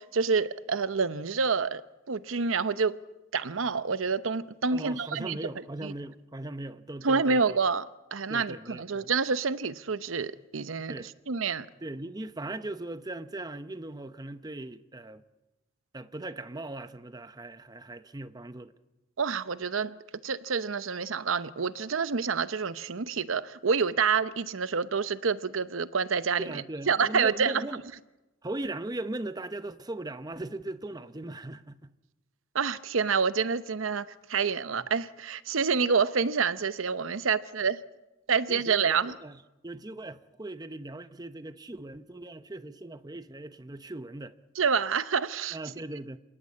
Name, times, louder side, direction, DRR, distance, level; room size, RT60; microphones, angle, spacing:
voice 1, 0.0-1.8 2.1-3.0 3.3-5.4 5.8-5.9 7.0-7.9 8.1-11.7 19.2-20.0 20.2-27.6 32.5-37.8 38.3-39.1 44.6-45.6, right 5 dB, 80° right, 0.8 m, -28 dB
voice 2, 4.7-7.6 8.3-9.1 10.9-11.1 11.8-15.2 15.9-18.7 26.4-27.8 28.4-31.9 38.5-44.4 45.5-46.2, right 2 dB, 20° right, 0.7 m, -39 dB
28.0 x 17.5 x 8.5 m
head